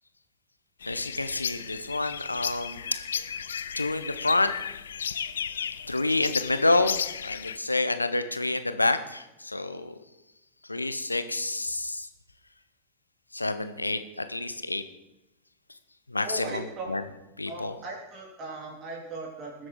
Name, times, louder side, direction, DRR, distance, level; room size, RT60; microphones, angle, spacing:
sound 1, 0.8-7.6, left 7 dB, 65° left, 0.5 m, -34 dB
voice 1, 0.9-2.8 3.8-4.5 5.9-7.0 7.2-9.9 10.7-12.1 13.3-14.8 16.1-16.6 16.9-17.0 17.4-17.7, left 2 dB, 85° left, 10 dB, 0.9 m, -28 dB
voice 2, 16.2-16.9 17.5-19.7, right 2 dB, 30° right, -1 dB, 3.5 m, -38 dB
20.0 x 7.8 x 3.9 m, 0.95 s
figure-of-eight pair, 90°, 0 cm